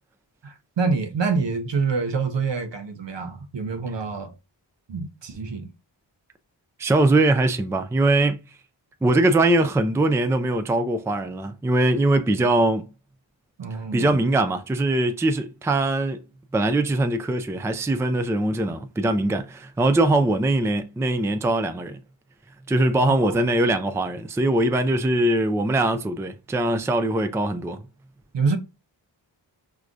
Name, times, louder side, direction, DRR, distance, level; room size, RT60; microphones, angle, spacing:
voice 1, 0.4-4.3 4.9-5.7 13.6-14.2 23.0-23.3 28.3-28.6, right 4 dB, 70° right, 0.7 m, -26 dB
voice 2, 6.8-8.4 9.0-12.9 13.9-16.2 16.5-22.0 22.7-27.8, right 2 dB, 5° right, 0.4 m, -22 dB
4.7 x 2.1 x 2.5 m
cardioid pair, 40°, 46 cm